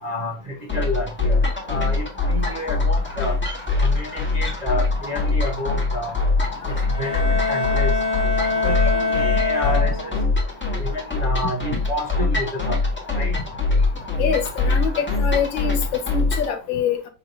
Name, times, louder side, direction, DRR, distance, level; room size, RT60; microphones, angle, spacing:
voice 1, 0.0-1.4 1.7-3.4 3.8-6.1 6.6-7.9 8.5-10.1 10.8-12.8 13.2-13.4, left 1 dB, 40° right, 0.6 m, -29 dB
sound 1, 0.7-16.5, left 3 dB, 5° left, 1.1 m, -23 dB
Bowed string instrument, 6.9-10.4, left 4 dB, 40° left, 1.2 m, -24 dB
voice 2, 14.2-15.8 16.1-17.0, left 7 dB, 80° left, 1.6 m, -24 dB
5.6 x 3.1 x 2.5 m
omnidirectional pair, 2.1 m